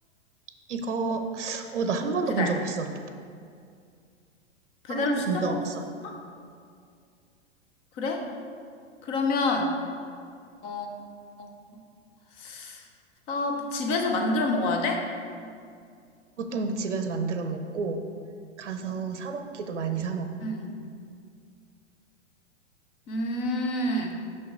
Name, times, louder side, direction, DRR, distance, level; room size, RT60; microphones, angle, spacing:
voice 1, 0.7-2.9 4.9-5.8 16.4-18.0 18.6-20.4, right 4 dB, 70° right, 7 dB, 0.6 m, -30 dB
voice 2, 4.8-5.6 6.0-6.2 8.0-8.2 9.0-9.7 10.6-10.9 11.4-11.5 12.4-12.8 13.3-15.0 20.4-20.8 23.1-24.2, left 2 dB, 15° left, 2 dB, 0.4 m, -28 dB
5.7 x 5.7 x 3.6 m, 2.3 s
figure-of-eight pair, 100°, 36 cm